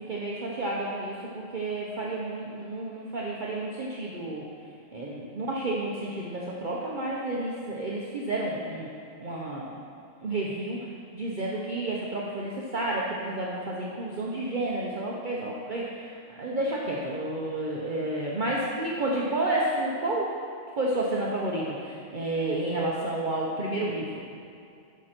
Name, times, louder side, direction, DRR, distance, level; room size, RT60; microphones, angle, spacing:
voice 1, 0.0-4.4 4.9-8.9 9.2-9.8 10.2-10.8 11.1-20.3 20.8-24.1, right 2 dB, 40° right, -4 dB, 1.0 m, -30 dB
11.0 x 6.5 x 4.4 m, 2.4 s
omnidirectional pair, 1.3 m